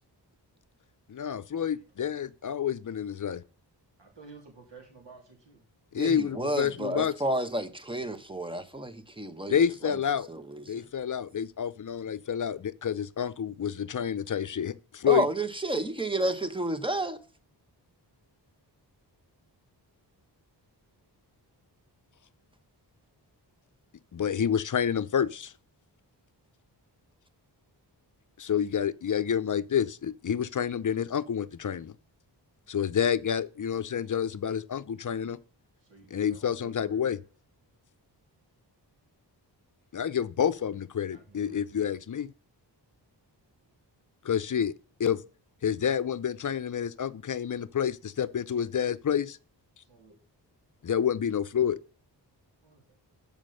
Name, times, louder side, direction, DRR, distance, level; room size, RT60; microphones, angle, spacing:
voice 1, 1.1-3.4 5.9-7.1 9.5-10.3 10.7-15.3 24.1-25.5 28.4-31.9 32.7-35.4 36.1-37.2 39.9-42.3 44.2-44.7 45.0-45.2 45.6-49.4 50.8-51.8, left 8 dB, 45° left, 0.6 m, -28 dB
voice 2, 4.0-5.6 35.8-37.0 41.1-41.7 49.8-50.2 52.6-52.8, right 4 dB, 75° right, 3.3 m, -52 dB
voice 3, 6.0-10.0 10.3-10.8 15.1-17.2, right 1 dB, 10° right, 1.0 m, -31 dB
7.3 x 5.2 x 6.4 m
wide cardioid pair, 90°, 43 cm